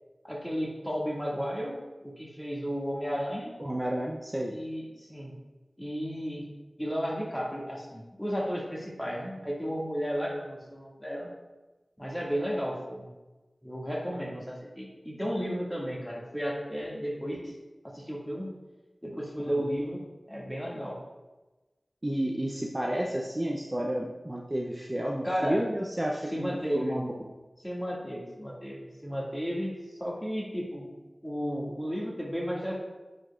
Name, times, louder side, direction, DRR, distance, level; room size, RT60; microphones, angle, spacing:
voice 1, 0.2-3.5 4.5-5.3 5.8-6.5 6.8-11.3 12.0-13.1 13.6-17.5 17.8-18.5 19.0-21.0 25.2-25.6 26.3-27.0 27.6-31.0 31.2-32.8, equal, 10° left, -4 dB, 2.1 m, -33 dB
voice 2, 3.6-4.6 22.0-27.1, right 1 dB, 25° right, -2 dB, 0.7 m, -31 dB
9.4 x 5.2 x 2.5 m, 1.1 s
wide cardioid pair, 45°, 0 cm